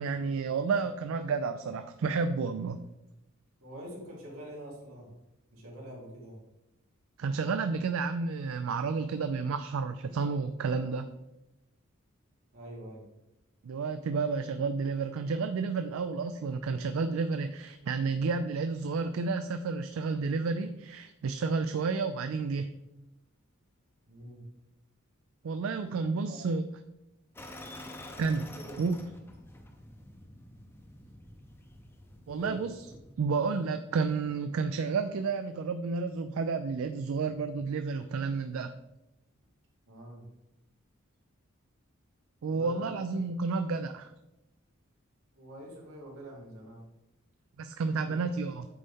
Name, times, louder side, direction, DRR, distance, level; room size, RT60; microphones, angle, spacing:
voice 1, 0.0-2.8 7.2-11.1 13.6-22.7 25.4-26.7 28.2-28.5 28.8-29.0 32.3-32.7 33.2-38.7 42.4-44.1 47.6-48.7, right 4 dB, 70° right, 9 dB, 0.4 m, -31 dB
voice 2, 3.6-5.1 5.5-6.4 12.5-13.1 24.0-24.4 26.1-26.4 28.5-28.7 32.3-32.7 39.9-40.3 42.5-43.2 45.3-46.9 48.0-48.4, right 1 dB, 90° right, -4 dB, 2.5 m, -45 dB
sound 1, 27.4-33.1, left 1 dB, 10° left, 0.6 m, -48 dB
8.6 x 4.1 x 3.6 m, 0.93 s
head